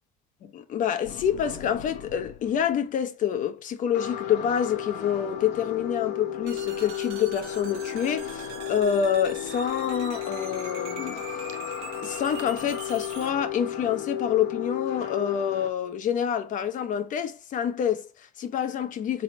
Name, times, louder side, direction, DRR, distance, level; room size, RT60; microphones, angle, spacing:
voice 1, 0.4-11.5 12.0-19.2, left 8 dB, 45° left, 0.8 m, -27 dB
sound 1, 1.0-2.8 3.9-15.7, left 10 dB, 70° left, 1.0 m, -34 dB
sound 2, 6.5-13.3, right 7 dB, 80° right, 1.0 m, -43 dB
4.0 x 3.5 x 3.0 m
supercardioid pair, 85°, 18 cm